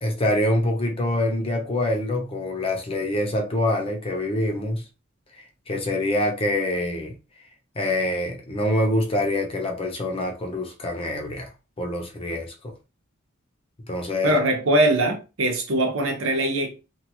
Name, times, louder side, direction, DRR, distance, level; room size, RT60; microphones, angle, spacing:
voice 1, 0.0-4.8 5.7-7.1 7.8-11.5 11.8-12.7 13.9-14.4, left 1 dB, 25° left, 0.6 m, -25 dB
voice 2, 14.2-16.7, right 1 dB, 70° right, 0.9 m, -22 dB
2.9 x 2.4 x 2.9 m
head